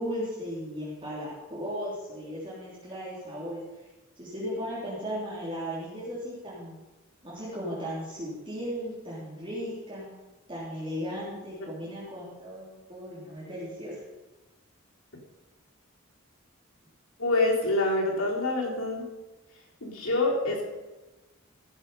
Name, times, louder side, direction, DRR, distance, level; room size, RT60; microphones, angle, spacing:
voice 1, 0.0-3.6 4.2-6.8 7.2-10.1 10.5-13.9, equal, 25° right, -8 dB, 3.3 m, -36 dB
voice 2, 17.2-19.1 19.8-20.7, left 2 dB, 90° left, -3 dB, 3.8 m, -26 dB
16.5 x 7.1 x 5.5 m, 1.1 s
head